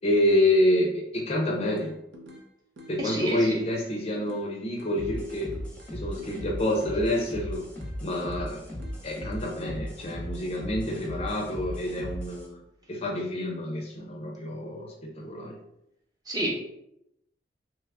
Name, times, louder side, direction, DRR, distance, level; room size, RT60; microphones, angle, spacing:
voice 1, 0.0-1.9 2.9-5.5 5.9-7.7 8.0-8.6 9.0-12.6 12.9-15.6, left 1 dB, 35° left, 0 dB, 0.5 m, -27 dB
sound 1, 1.8-2.5 2.8-4.5 4.8-6.5 6.8-8.5 8.8-9.7, equal, 80° right, 0.6 m, -48 dB
voice 2, 3.0-3.6 16.3-16.5, right 1 dB, 20° right, -3 dB, 0.8 m, -29 dB
sound 2, 4.9-12.5, equal, 5° left, 0.8 m, -37 dB
3.0 x 2.3 x 3.4 m, 0.81 s
head